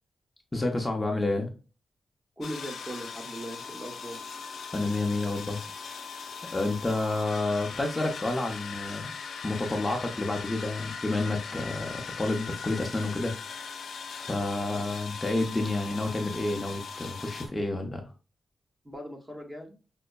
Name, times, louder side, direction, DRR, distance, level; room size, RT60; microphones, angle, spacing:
voice 1, 0.5-1.5 4.7-5.6 6.5-9.1 9.4-13.3 14.2-18.0, left 2 dB, 20° left, 2 dB, 0.7 m, -29 dB
sound 1, 2.4-17.5, left 5 dB, 80° left, 0.5 m, -40 dB
voice 2, 2.4-4.2 18.8-19.7, equal, 15° right, 3 dB, 1.1 m, -39 dB
5.2 x 2.1 x 2.3 m, 0.33 s
cardioid pair, 75°, 0 cm